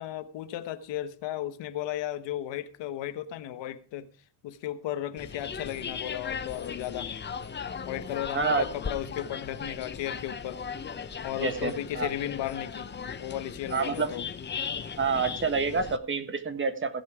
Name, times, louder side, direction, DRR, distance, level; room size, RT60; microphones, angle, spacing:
voice 1, 0.0-4.1 4.4-7.1 7.8-10.6 11.2-12.9 13.2-14.2, left 12 dB, 85° left, 1.2 m, -35 dB
sound 1, 5.2-16.0, left 6 dB, 25° left, 0.8 m, -37 dB
voice 2, 8.3-8.7 11.4-12.1 13.7-14.1 15.0-17.0, right 4 dB, 30° right, 1.5 m, -28 dB
16.0 x 8.0 x 4.9 m
cardioid pair, 130°, 43 cm